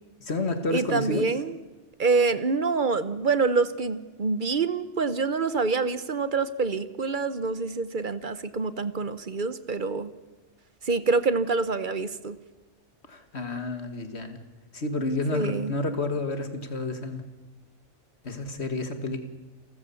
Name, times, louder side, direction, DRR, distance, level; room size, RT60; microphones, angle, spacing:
voice 1, 0.2-1.3 13.1-14.4 14.7-17.2 18.2-19.2, left 2 dB, 60° left, 8 dB, 2.1 m, -30 dB
voice 2, 0.7-1.5 2.0-10.1 10.8-12.4 15.3-15.7, right 4 dB, 45° right, 14 dB, 1.0 m, -26 dB
29.0 x 14.0 x 7.1 m, 1.2 s
omnidirectional pair, 1.3 m